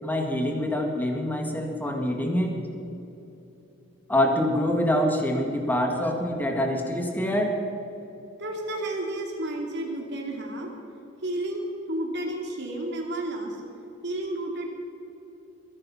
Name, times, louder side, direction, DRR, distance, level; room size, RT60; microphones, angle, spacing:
voice 1, 0.0-2.6 4.1-7.5, left 1 dB, 10° left, 2 dB, 1.9 m, -25 dB
voice 2, 8.4-10.7 11.2-13.6 14.0-14.7, right 1 dB, 60° right, 0 dB, 2.9 m, -31 dB
22.5 x 11.0 x 5.8 m, 2.9 s
head